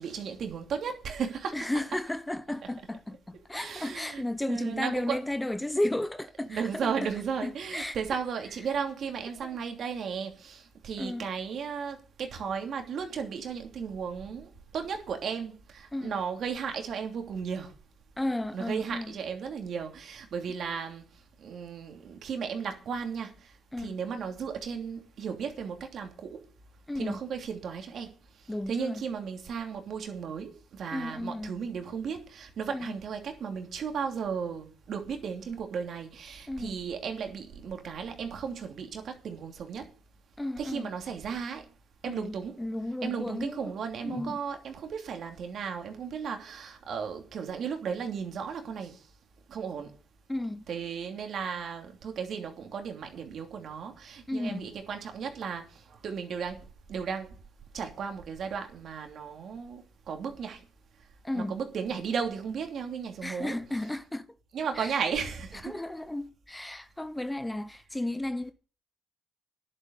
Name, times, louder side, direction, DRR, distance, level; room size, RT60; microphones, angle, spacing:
voice 1, 0.0-1.7 3.5-5.2 6.5-17.7 18.5-21.0 21.4-23.3 23.8-26.4 26.9-28.1 28.7-39.9 40.6-41.6 42.0-42.6 43.0-49.0 49.5-49.9 50.7-56.6 56.9-57.3 57.7-60.6 61.3-63.6 64.5-65.7, right 6 dB, 65° right, 2.9 m, -35 dB
voice 2, 1.5-6.9 7.4-8.0 11.0-11.3 15.9-16.2 18.2-19.1 23.7-23.9 26.9-27.2 28.5-29.0 30.9-31.5 32.7-33.0 36.5-36.8 40.4-40.9 42.0-43.7 44.0-44.4 50.3-50.7 54.3-54.7 61.2-61.6 63.2-64.3 64.8-64.9 65.6-68.5, left 1 dB, 10° left, 0.8 m, -33 dB
11.0 x 7.8 x 8.3 m
cardioid pair, 90°, 0 cm